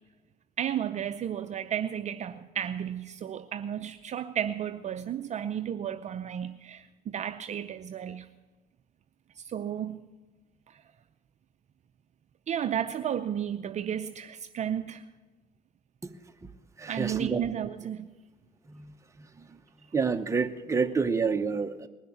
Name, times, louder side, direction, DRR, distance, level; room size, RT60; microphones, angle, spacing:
voice 1, 0.6-6.9 7.1-8.3 9.4-10.0 10.7-10.8 12.5-15.0 16.9-18.1, right 9 dB, 45° right, 0.6 m, -33 dB
voice 2, 16.8-17.4 18.7-18.9 19.2-19.6 19.9-21.9, right 5 dB, 15° right, 0.9 m, -29 dB
20.0 x 6.6 x 8.8 m
cardioid pair, 110°, 17 cm